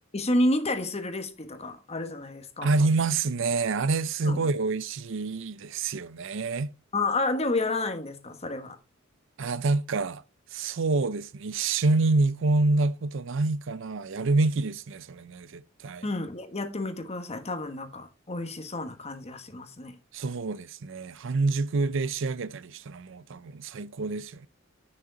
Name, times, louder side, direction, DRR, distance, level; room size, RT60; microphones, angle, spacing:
voice 1, 0.1-2.7 4.3-4.5 6.9-8.8 16.0-20.0, left 2 dB, 30° left, 1.2 m, -30 dB
voice 2, 2.6-6.7 9.4-10.2 10.5-16.0 20.1-24.5, right 3 dB, 65° right, 0.5 m, -27 dB
9.0 x 6.5 x 3.8 m
head